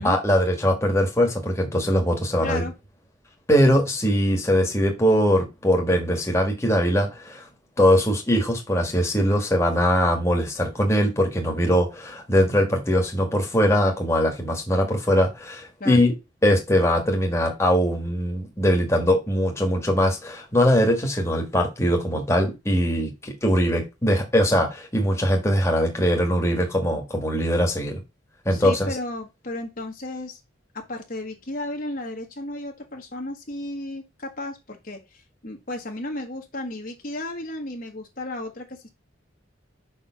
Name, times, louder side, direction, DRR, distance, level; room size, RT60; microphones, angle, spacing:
voice 1, 0.0-2.7 3.5-7.5 7.8-16.1 16.4-28.0 28.4-28.9, equal, 15° left, 1.5 m, -21 dB
voice 2, 2.4-2.7 15.8-16.1 28.5-30.4 30.7-38.9, left 1 dB, 45° left, 1.2 m, -34 dB
5.4 x 4.4 x 5.7 m
head